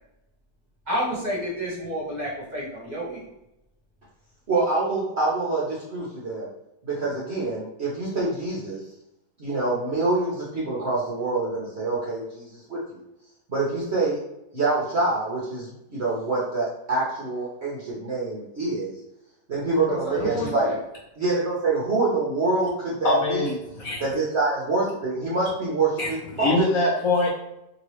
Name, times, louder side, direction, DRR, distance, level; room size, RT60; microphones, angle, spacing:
voice 1, 0.9-3.3 19.8-20.8, equal, 30° right, -7 dB, 1.1 m, -29 dB
voice 2, 4.5-6.5 6.8-8.8 9.4-13.0 13.5-14.2 14.5-19.0 19.5-20.7 21.2-23.6 24.0-26.6, right 3 dB, 55° right, -6 dB, 0.8 m, -26 dB
voice 3, 23.0-24.0 26.0-26.1 26.3-27.3, left 2 dB, 60° left, -4 dB, 1.1 m, -23 dB
2.9 x 2.9 x 3.0 m, 0.87 s
omnidirectional pair, 1.8 m